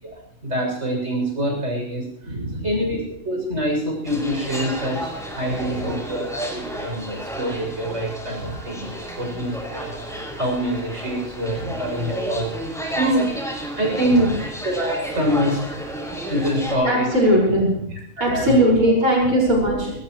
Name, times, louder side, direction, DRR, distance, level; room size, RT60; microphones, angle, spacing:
voice 1, 0.0-2.3 2.6-12.5 12.9-13.4 13.8-15.6 16.3-17.1 18.2-18.7 19.7-19.8, right 1 dB, 55° right, 0 dB, 7.7 m, -25 dB
voice 2, 2.2-2.6 5.6-5.7 11.5-11.7 16.8-19.9, equal, 75° right, -3 dB, 6.2 m, -19 dB
sound 1, 4.0-16.7, equal, ahead, 6.2 m, -32 dB
21.5 x 19.5 x 3.2 m, 0.75 s
omnidirectional pair, 1.5 m